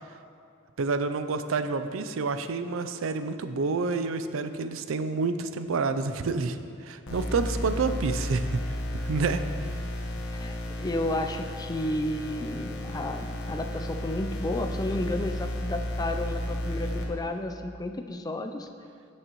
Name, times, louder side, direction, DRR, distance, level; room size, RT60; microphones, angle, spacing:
voice 1, 0.8-6.6 6.8-8.6 8.9-9.4, right 4 dB, 85° right, 10 dB, 0.5 m, -28 dB
sound 1, 7.1-17.0, equal, 70° left, 1.2 m, -33 dB
voice 2, 10.3-18.7, left 1 dB, 20° left, 6 dB, 0.4 m, -32 dB
15.5 x 6.3 x 3.0 m, 2.4 s
head